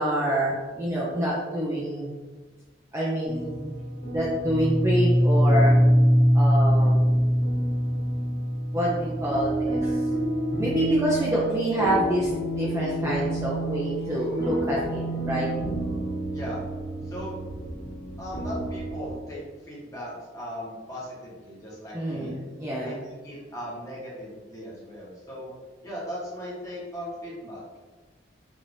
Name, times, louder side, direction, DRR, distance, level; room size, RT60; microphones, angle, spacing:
voice 1, 0.0-2.1 2.9-3.6 4.1-5.8 6.3-7.0 8.7-10.0 10.6-15.5 21.9-23.0, right 1 dB, 15° right, -6 dB, 0.5 m, -27 dB
sound 1, 3.3-19.2, equal, 60° left, 1.4 m, -25 dB
voice 2, 18.2-22.3 22.7-25.5 25.8-27.6, equal, 20° left, -7 dB, 1.2 m, -38 dB
4.7 x 2.8 x 2.7 m, 1.3 s
head